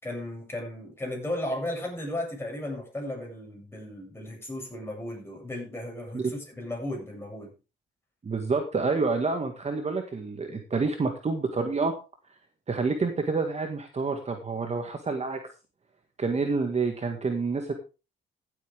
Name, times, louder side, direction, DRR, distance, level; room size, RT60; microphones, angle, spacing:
voice 1, 0.0-7.5, left 1 dB, 10° left, 7.7 m, -35 dB
voice 2, 8.2-11.9 12.7-15.4 16.2-17.7, right 4 dB, 35° right, 2.0 m, -28 dB
15.0 x 8.7 x 3.6 m
cardioid pair, 90°, 20 cm